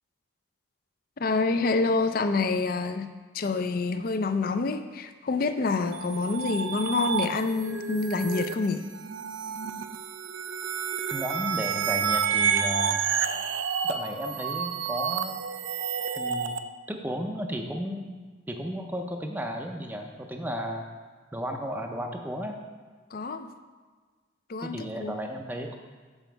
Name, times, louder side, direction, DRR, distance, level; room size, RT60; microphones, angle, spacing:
voice 1, 1.2-8.9 23.1-23.5 24.5-25.2, left 3 dB, 45° left, 9 dB, 0.4 m, -27 dB
sound 1, 5.9-16.6, right 7 dB, 70° right, 0.4 m, -30 dB
voice 2, 11.1-13.0 13.8-15.4 16.2-16.5 16.9-18.2 18.5-20.9 21.3-22.6 24.6-25.8, equal, 10° right, 3 dB, 0.5 m, -34 dB
7.2 x 6.9 x 4.5 m, 1.5 s
head